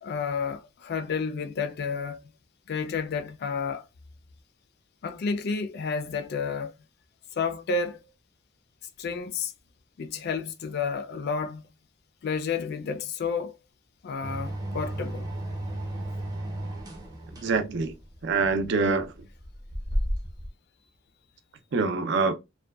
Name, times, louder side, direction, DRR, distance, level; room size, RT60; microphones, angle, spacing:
voice 1, 0.0-2.2 2.7-3.9 5.0-6.7 7.3-8.0 9.0-9.5 10.0-11.7 12.2-13.6 14.0-15.3, left 5 dB, 55° left, 0.4 m, -31 dB
sound 1, 14.2-20.5, equal, 20° right, 0.6 m, -33 dB
voice 2, 17.4-17.9 18.2-19.1 21.7-22.4, right 4 dB, 60° right, 0.4 m, -25 dB
2.6 x 2.2 x 2.3 m
head